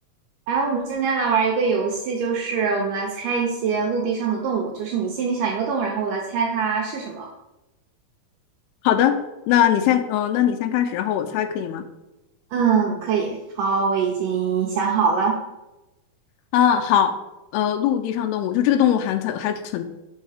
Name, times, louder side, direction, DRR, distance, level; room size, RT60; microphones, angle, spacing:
voice 1, 0.5-7.3 12.5-15.4, right 5 dB, 80° right, 0 dB, 1.9 m, -23 dB
voice 2, 8.8-9.2 9.5-11.9 16.5-17.2 17.5-19.8, left 10 dB, 90° left, 7 dB, 2.5 m, -20 dB
5.6 x 5.5 x 4.8 m, 1.0 s
omnidirectional pair, 4.5 m